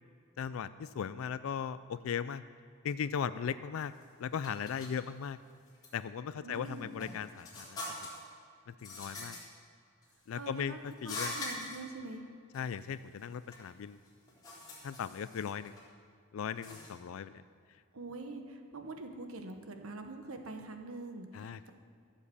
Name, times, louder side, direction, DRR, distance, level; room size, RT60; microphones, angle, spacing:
voice 1, 0.4-2.4 2.8-3.9 4.2-5.4 5.9-7.8 8.7-9.4 10.3-11.3 12.5-14.0 14.8-15.7 16.3-17.4 21.3-21.6, left 7 dB, 70° left, 14 dB, 0.4 m, -37 dB
sound 1, 3.8-4.0 4.4-4.9 5.7-5.9 6.5-8.3 8.8-9.4 10.0-10.5 11.0-11.8 12.5-12.6 13.0-13.7 14.1-15.8 16.5-16.9, left 2 dB, 20° left, 3.7 m, -43 dB
voice 2, 6.4-6.9 10.3-10.8 11.0-12.2 17.9-21.7, right 2 dB, 80° right, 5 dB, 1.2 m, -44 dB
14.0 x 7.4 x 7.1 m, 2.3 s
head